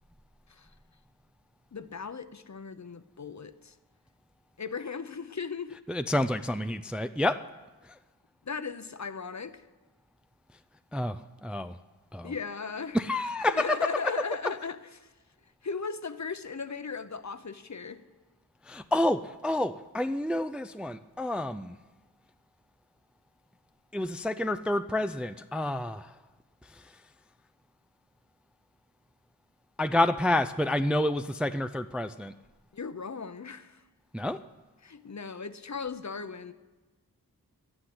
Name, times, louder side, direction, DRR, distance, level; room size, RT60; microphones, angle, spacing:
voice 1, 1.7-3.7 4.6-5.8 8.4-9.6 12.2-13.0 13.4-15.1 15.6-18.0 32.7-33.8 34.8-36.5, left 5 dB, 45° left, 0.7 m, -37 dB
voice 2, 5.9-7.4 10.9-11.8 12.1-12.3 12.9-13.8 14.0-14.1 18.7-21.8 23.9-26.1 29.8-32.3 34.1-34.4, left 1 dB, 5° right, 0.4 m, -29 dB
11.5 x 8.8 x 9.5 m
wide cardioid pair, 65°, 38 cm